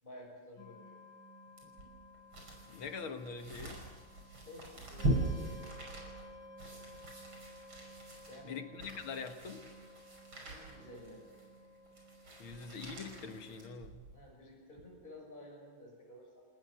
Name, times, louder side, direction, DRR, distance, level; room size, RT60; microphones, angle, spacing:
voice 1, 0.0-1.0 4.4-5.6 8.3-8.6 10.4-11.2 14.1-16.5, left 1 dB, 25° left, -1 dB, 6.1 m, -52 dB
sound 1, 0.6-13.7, equal, 45° right, 4.2 m, -55 dB
sound 2, 1.6-14.2 14.7-14.8, right 1 dB, 80° right, 6.3 m, -41 dB
voice 2, 2.7-3.8 8.4-9.7 12.4-14.0, left 5 dB, 85° left, 6 dB, 2.4 m, -43 dB
28.5 x 19.5 x 6.5 m, 1.3 s
omnidirectional pair, 2.2 m